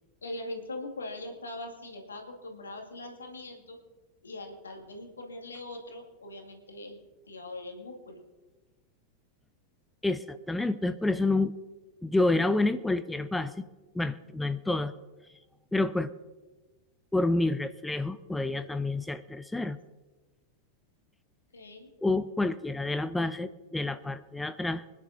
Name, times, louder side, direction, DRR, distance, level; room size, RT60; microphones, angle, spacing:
voice 1, 0.2-3.8 4.2-8.2 21.5-21.9, left 2 dB, 75° left, 2 dB, 2.2 m, -41 dB
voice 2, 10.0-11.5 12.0-13.5 13.9-14.9 15.7-16.1 17.1-19.8 22.0-24.8, left 2 dB, 5° left, 14 dB, 0.5 m, -28 dB
25.5 x 10.5 x 2.7 m, 1.2 s
figure-of-eight pair, 90°, 0 cm